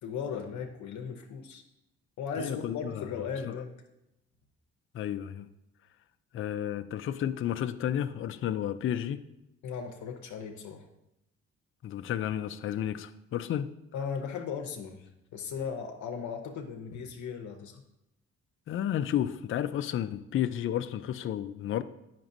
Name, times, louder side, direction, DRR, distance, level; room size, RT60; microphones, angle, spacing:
voice 1, 0.0-1.6 2.2-3.7 9.6-10.9 13.9-17.8, left 6 dB, 70° left, 0.8 m, -37 dB
voice 2, 2.4-3.1 3.5-3.6 4.9-5.5 6.3-9.2 11.8-13.7 18.7-21.8, left 10 dB, 45° left, 0.4 m, -32 dB
8.6 x 5.9 x 2.6 m
cardioid pair, 90°, 30 cm